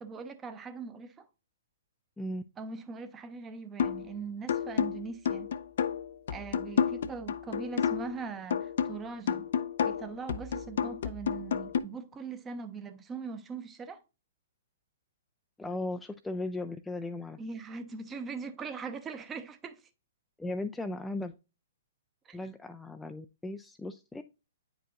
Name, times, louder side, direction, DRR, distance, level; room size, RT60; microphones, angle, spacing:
voice 1, 0.0-1.3 2.6-5.5 6.3-9.5 9.8-14.0 17.4-19.8 22.2-22.4, right 5 dB, 20° right, 0.7 m, -41 dB
sound 1, 3.8-4.1 4.5-8.2 8.5-11.8, left 8 dB, 65° left, 0.5 m, -31 dB
voice 2, 15.6-17.4 20.4-21.3 22.3-24.2, left 2 dB, 5° left, 0.3 m, -37 dB
8.9 x 4.9 x 2.4 m
hypercardioid pair, 125°, 0 cm